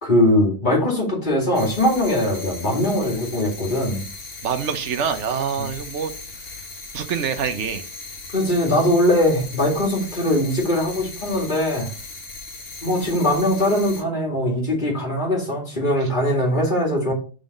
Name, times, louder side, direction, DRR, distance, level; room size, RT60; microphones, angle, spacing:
voice 1, 0.0-4.0 8.3-11.9 12.8-17.1, left 1 dB, 40° left, 2.3 m, -21 dB
sound 1, 1.5-14.0, left 3 dB, 80° left, 1.7 m, -38 dB
voice 2, 4.4-6.1 6.9-7.8, right 7 dB, 70° right, 1.1 m, -25 dB
5.5 x 4.0 x 5.2 m
omnidirectional pair, 1.3 m